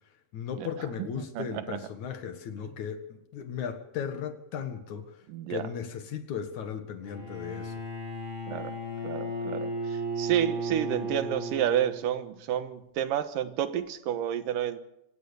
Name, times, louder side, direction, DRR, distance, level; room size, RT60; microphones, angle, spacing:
voice 1, 0.3-7.8, left 7 dB, 65° left, 8 dB, 3.0 m, -36 dB
voice 2, 1.4-1.8 5.3-5.7 8.5-8.7 9.0-14.8, right 10 dB, 85° right, 11 dB, 2.9 m, -30 dB
Bowed string instrument, 7.0-12.3, right 1 dB, 15° right, 6.4 m, -35 dB
25.5 x 17.5 x 7.0 m, 0.85 s
omnidirectional pair, 3.8 m